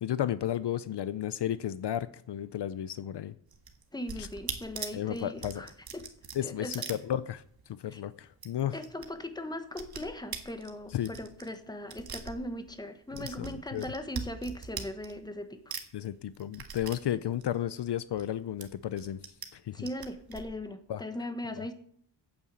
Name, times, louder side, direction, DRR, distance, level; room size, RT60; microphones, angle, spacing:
voice 1, 0.0-3.4 4.2-4.3 4.9-5.6 6.3-8.8 10.9-11.1 13.2-13.9 15.9-19.2 19.5-19.9 20.9-21.0, left 11 dB, 65° left, 15 dB, 0.6 m, -33 dB
sound 1, 3.5-7.7 7.9-8.0 8.3-9.1 9.3-12.8 13.1-15.4 15.7-18.3 18.6-19.5 19.8-20.4, right 6 dB, 55° right, 1.7 m, -41 dB
voice 2, 3.9-6.1 6.4-6.8 7.9-8.0 8.7-15.8 19.7-21.7, left 1 dB, 10° left, 8 dB, 1.2 m, -39 dB
8.9 x 8.8 x 8.2 m, 0.63 s
wide cardioid pair, 135°, 45 cm